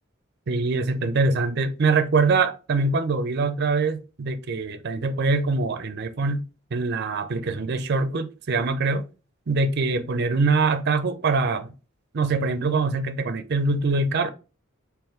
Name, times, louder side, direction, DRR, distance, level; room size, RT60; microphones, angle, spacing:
voice 1, 0.5-6.4 6.7-9.0 9.5-11.7 12.1-14.3, right 3 dB, 50° right, 0.5 m, -23 dB
3.7 x 3.0 x 3.1 m
head